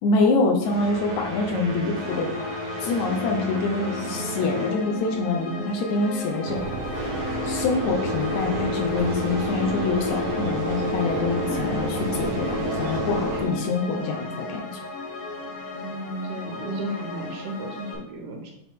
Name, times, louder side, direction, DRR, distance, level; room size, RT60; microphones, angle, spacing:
voice 1, 0.0-2.3 2.8-6.6 7.4-14.8, left 3 dB, 75° left, 3 dB, 2.0 m, -25 dB
sound 1, 0.6-5.5 5.8-6.1 6.7-13.8, equal, 35° right, 1.7 m, -32 dB
sound 2, 2.0-17.9, left 2 dB, 50° left, 1.8 m, -36 dB
sound 3, 6.4-13.5, right 2 dB, 65° right, 1.8 m, -32 dB
voice 2, 15.8-18.5, right 1 dB, 80° right, 2 dB, 2.6 m, -34 dB
7.3 x 4.3 x 3.6 m, 0.76 s
omnidirectional pair, 3.7 m